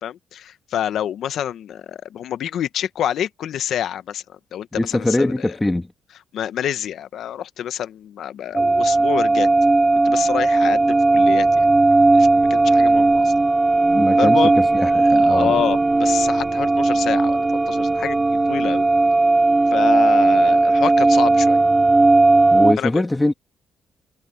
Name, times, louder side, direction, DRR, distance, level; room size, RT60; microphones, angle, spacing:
voice 1, 0.0-4.2 4.5-5.5 6.3-9.5 10.0-11.7 12.1-13.3 14.2-18.9 19.7-21.6 22.8-23.0, left 10 dB, 70° left, 1.2 m, -27 dB
voice 2, 4.7-5.9 13.8-14.4 14.7-15.6 22.5-23.3, left 2 dB, 15° left, 2.4 m, -22 dB
sound 1, 8.5-22.7, right 2 dB, 20° right, 0.4 m, -16 dB
cardioid pair, 90°, 0 cm